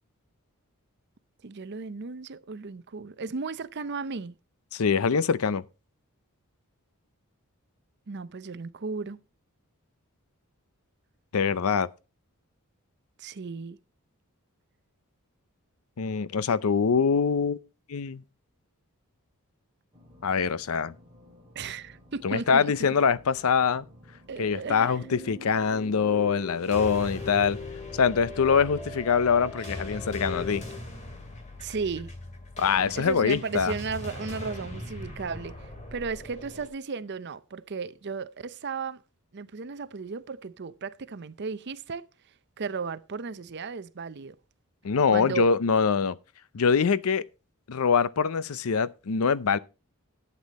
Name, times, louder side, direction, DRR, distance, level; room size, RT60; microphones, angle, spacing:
voice 1, 1.4-4.3 8.1-9.2 13.2-13.8 21.6-22.7 24.3-25.0 29.6-30.1 31.6-32.1 32.9-39.0 39.3-42.0 42.6-44.3 45.1-45.5, right 4 dB, 50° right, 0.6 m, -35 dB
voice 2, 4.7-5.6 11.3-11.9 16.0-17.6 17.9-18.2 20.2-20.9 22.2-23.9 24.4-27.6 27.9-30.6 32.6-33.7 44.8-46.2 46.5-47.2 47.7-49.6, left 6 dB, 70° left, 0.5 m, -24 dB
sound 1, 19.9-29.1, left 1 dB, 20° right, 2.3 m, -55 dB
sound 2, 24.8-30.8, left 4 dB, 10° left, 2.4 m, -41 dB
sound 3, 26.5-36.7, left 1 dB, 30° left, 2.4 m, -41 dB
11.5 x 8.3 x 4.1 m
head